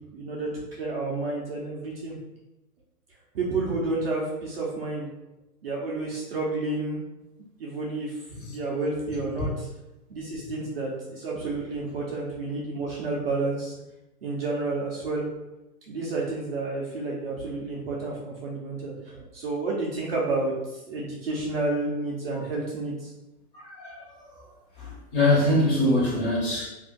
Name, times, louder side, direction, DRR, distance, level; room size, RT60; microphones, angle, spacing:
voice 1, 0.1-2.2 3.3-5.1 5.6-7.0 7.6-8.2 8.4-9.7 10.1-13.7 14.2-15.2 15.9-23.1, right 3 dB, 40° right, -4 dB, 0.6 m, -30 dB
voice 2, 23.5-24.0 24.8-26.7, left 1 dB, 30° left, -5 dB, 1.3 m, -23 dB
2.5 x 2.4 x 3.7 m, 0.99 s
hypercardioid pair, 150°, 49 cm